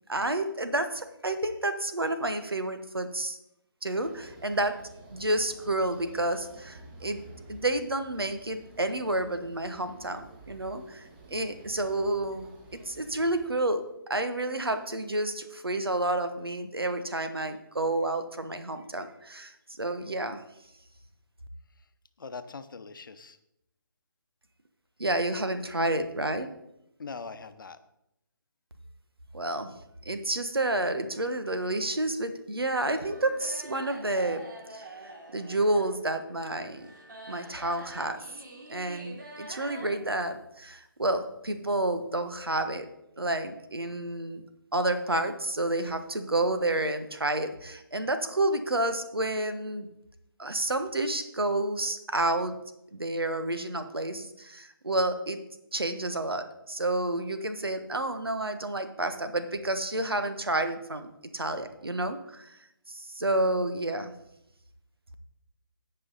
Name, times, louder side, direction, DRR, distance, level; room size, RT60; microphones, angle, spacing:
voice 1, 0.1-3.4 3.8-4.8 5.1-7.2 7.5-12.5 12.7-20.4 25.0-26.5 29.3-29.7 30.0-34.4 34.7-34.8 35.3-36.9 37.3-38.2 38.7-42.9 43.2-44.4 44.7-49.9 50.4-52.6 52.9-55.4 55.7-62.6 62.9-64.1, right 1 dB, 90° right, 9 dB, 1.3 m, -30 dB
sound 1, 3.9-13.5, right 2 dB, 25° right, 1.6 m, -51 dB
voice 2, 22.2-23.4 27.0-27.8, left 4 dB, 60° left, 10 dB, 0.9 m, -41 dB
sound 2, 32.7-39.9, right 2 dB, 55° right, 3.3 m, -46 dB
16.5 x 5.7 x 4.0 m, 0.82 s
figure-of-eight pair, 150°, 12 cm